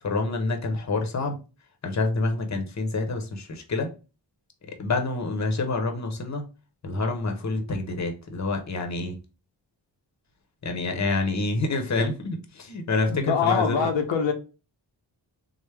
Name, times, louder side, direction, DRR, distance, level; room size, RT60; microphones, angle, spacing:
voice 1, 0.0-1.4 1.8-3.9 4.8-6.4 6.8-9.2 10.6-13.9, left 3 dB, 40° left, 0.8 m, -27 dB
voice 2, 13.1-14.3, left 6 dB, 80° left, 0.6 m, -24 dB
3.2 x 2.1 x 3.2 m
cardioid pair, 55°, 45 cm